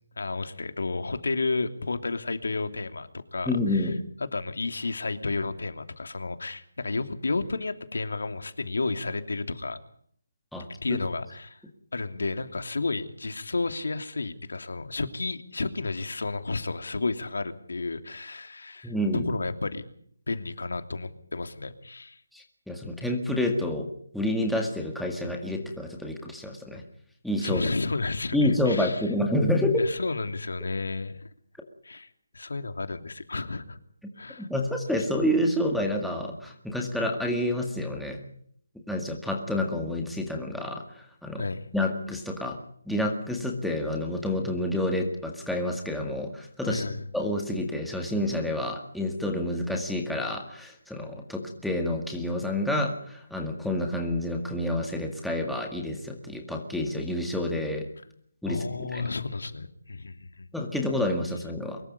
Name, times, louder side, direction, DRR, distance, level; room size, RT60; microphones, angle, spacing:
voice 1, 0.2-3.8 4.3-9.8 10.8-11.6 11.9-18.9 19.3-19.8 20.3-22.2 27.4-29.0 29.8-31.2 31.8-32.1 32.3-33.8 34.2-34.5 41.4-41.6 46.6-47.0 58.4-60.5, left 3 dB, 75° left, 8 dB, 3.0 m, -32 dB
voice 2, 3.5-4.0 10.5-11.0 18.8-19.3 22.3-23.9 24.1-26.8 27.2-27.6 28.3-29.9 34.4-38.2 38.9-41.4 41.7-42.6 42.9-46.8 47.1-57.9 58.4-59.0 60.5-61.8, left 1 dB, ahead, 1 dB, 1.9 m, -28 dB
24.0 x 21.5 x 5.4 m, 0.64 s
hypercardioid pair, 170°, 0 cm